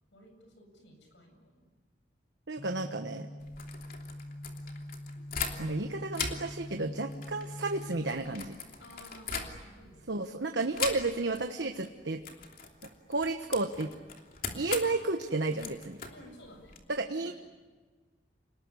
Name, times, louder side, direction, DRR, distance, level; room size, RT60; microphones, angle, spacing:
voice 1, 0.1-1.8 8.8-11.0 16.1-16.8 17.2-17.3, left 1 dB, 85° left, 4 dB, 7.6 m, -55 dB
voice 2, 2.5-3.3 5.6-8.5 10.1-12.2 13.1-13.9 14.5-16.0 16.9-17.3, right 2 dB, 75° right, 6 dB, 1.3 m, -32 dB
sound 1, 2.6-8.1, left 1 dB, 25° left, 0.8 m, -43 dB
sound 2, 3.4-5.8 6.1-9.9 10.7-11.4 11.7-11.9 12.2-16.8, left 5 dB, 50° left, 3.1 m, -40 dB
29.0 x 19.5 x 9.9 m, 1.4 s
head